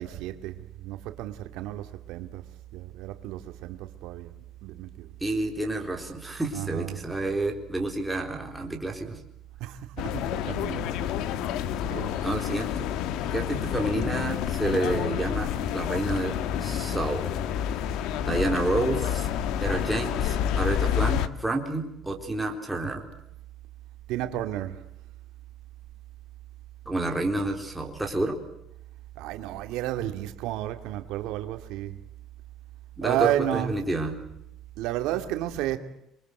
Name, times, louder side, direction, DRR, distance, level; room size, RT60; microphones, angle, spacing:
voice 1, 0.0-2.4 2.7-4.3 4.6-5.1 6.5-7.0 9.6-10.9 11.9-12.3 24.1-24.8 29.2-32.0 33.0-33.7 34.8-35.8, right 13 dB, 85° right, 2.4 m, -32 dB
voice 2, 5.2-9.2 12.2-12.9 13.3-16.3 16.6-17.3 18.2-19.3 19.6-23.1 26.9-28.4 33.0-34.1, right 2 dB, 5° right, 3.9 m, -29 dB
sound 1, 10.0-21.3, left 9 dB, 75° left, 1.6 m, -29 dB
27.5 x 23.5 x 7.9 m
cardioid pair, 160°, 0 cm